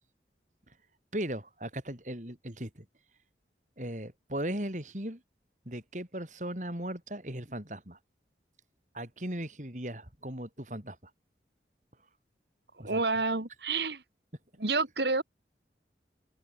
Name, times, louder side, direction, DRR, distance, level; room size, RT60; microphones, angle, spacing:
voice 1, 1.1-2.8 3.8-5.2 5.6-8.0 8.9-11.1 12.8-13.0, right 1 dB, 45° right, 5.0 m, -37 dB
voice 2, 12.8-14.0 14.6-15.2, right 3 dB, 75° right, 2.4 m, -29 dB
open air
head